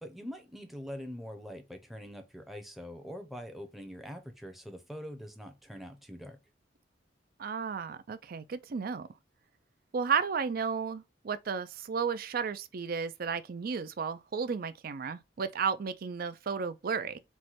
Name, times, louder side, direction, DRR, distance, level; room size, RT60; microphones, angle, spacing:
voice 1, 0.0-6.4, equal, ahead, 0.6 m, -44 dB
voice 2, 7.4-9.1 9.9-17.2, right 6 dB, 50° right, 0.4 m, -33 dB
4.6 x 2.2 x 4.0 m
head